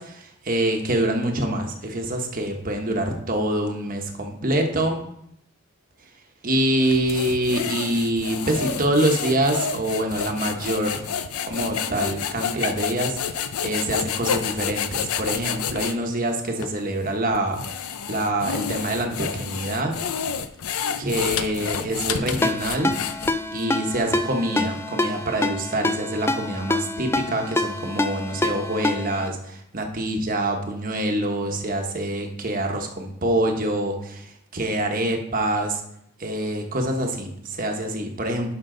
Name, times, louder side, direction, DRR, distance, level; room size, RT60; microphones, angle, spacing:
voice 1, 0.0-5.0 6.4-11.0 11.4-20.0 21.0-22.9 23.5-35.8 36.2-38.5, right 1 dB, 40° right, 3 dB, 1.1 m, -25 dB
sound 1, 6.8-16.0 16.6-16.7 17.3-23.6, left 7 dB, 85° left, 0.6 m, -29 dB
Ringtone, 22.4-29.3, left 2 dB, 10° left, 0.3 m, -26 dB
11.5 x 5.4 x 3.9 m, 0.75 s
head